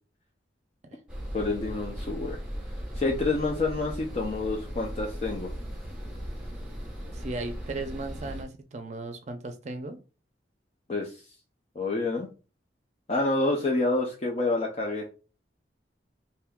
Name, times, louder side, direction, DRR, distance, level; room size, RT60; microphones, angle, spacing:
sound 1, 1.1-8.4, equal, 5° right, 1.0 m, -37 dB
voice 1, 1.3-2.4 3.0-5.5 10.9-11.1 11.8-12.3 13.1-15.0, left 2 dB, 35° left, 0 dB, 0.4 m, -28 dB
voice 2, 7.1-10.0, right 2 dB, 40° right, 6 dB, 0.5 m, -36 dB
3.6 x 2.7 x 2.2 m, 0.33 s
head